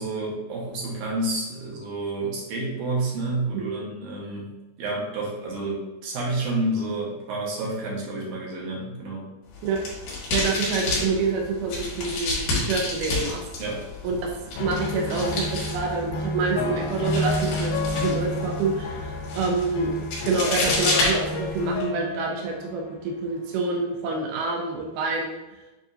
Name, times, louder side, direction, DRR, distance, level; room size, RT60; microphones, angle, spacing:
voice 1, 0.0-9.3 13.6-13.8, right 2 dB, 65° right, -4 dB, 2.3 m, -29 dB
sound 1, 9.5-21.8, left 2 dB, 70° left, 2.7 m, -30 dB
voice 2, 10.3-13.4 14.0-14.2 14.5-20.0 20.2-25.4, right 4 dB, 85° right, 0 dB, 1.8 m, -27 dB
sound 2, 14.6-23.2 23.9-24.4, left 2 dB, 90° left, 2.5 m, -30 dB
7.5 x 2.7 x 2.6 m, 1.1 s
omnidirectional pair, 4.4 m